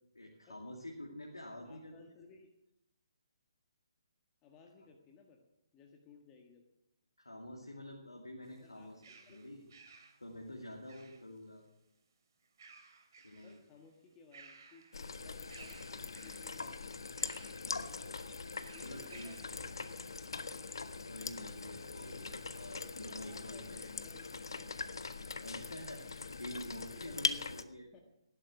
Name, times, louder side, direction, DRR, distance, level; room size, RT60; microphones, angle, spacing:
voice 1, 0.1-1.9 7.2-9.0 9.3-9.7 9.9-11.7 13.2-13.6 17.6-19.6 21.0-23.9 25.4-27.9, left 1 dB, 80° left, 1 dB, 2.4 m, -48 dB
voice 2, 1.5-2.5 4.4-5.4 5.7-6.7 8.6-8.9 9.2-9.5 13.4-14.9 15.2-17.3 18.7-20.0 23.1-24.8 26.9-27.2 27.8-28.1, left 4 dB, 20° left, 2 dB, 1.7 m, -60 dB
sound 1, 8.4-11.5 12.4-13.7 14.1-15.1 15.5-16.6 17.2-17.7 18.6-19.6, right 5 dB, 50° right, 2.7 m, -58 dB
sound 2, 14.9-27.6, left 4 dB, 65° left, 1.0 m, -42 dB
17.0 x 11.5 x 6.1 m, 0.83 s
figure-of-eight pair, 135°, 3 cm